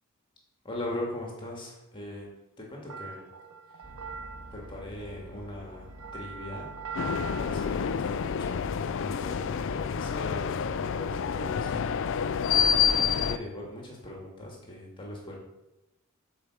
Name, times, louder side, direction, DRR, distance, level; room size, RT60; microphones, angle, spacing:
voice 1, 0.6-2.3 2.6-3.2 4.5-6.7 7.3-8.6 8.9-11.9 12.8-15.4, left 1 dB, 25° left, -2 dB, 1.9 m, -40 dB
sound 1, 2.9-8.3, right 5 dB, 85° right, 0.8 m, -42 dB
sound 2, 3.8-12.9, equal, 15° right, 3.3 m, -48 dB
sound 3, 6.9-13.4, left 7 dB, 60° left, 0.4 m, -28 dB
8.8 x 4.7 x 6.2 m, 0.98 s
head